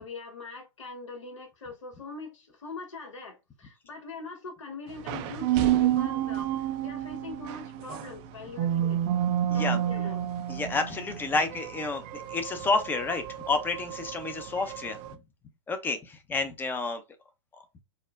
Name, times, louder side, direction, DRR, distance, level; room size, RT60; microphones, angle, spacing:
voice 1, 0.0-9.0 9.5-10.3 11.1-11.2, left 3 dB, 80° left, 1.1 m, -42 dB
sound 1, 4.9-15.1, right 11 dB, 35° right, 0.4 m, -30 dB
voice 2, 9.5-9.8 10.5-15.0 15.7-17.0, left 3 dB, 15° left, 0.6 m, -30 dB
4.2 x 2.1 x 2.4 m
hypercardioid pair, 125°, 16 cm